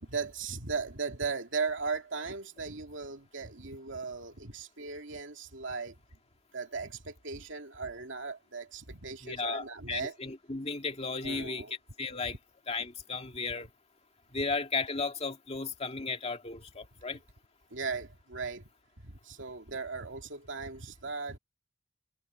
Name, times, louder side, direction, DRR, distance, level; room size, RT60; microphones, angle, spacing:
voice 1, 0.0-6.0 6.5-10.2 11.2-11.7 12.2-12.4 17.7-18.7 19.0-21.4, right 4 dB, 80° right, 2.4 m, -37 dB
voice 2, 9.2-11.6 12.0-12.4 12.7-13.7 14.3-17.2, left 4 dB, 35° left, 2.2 m, -35 dB
head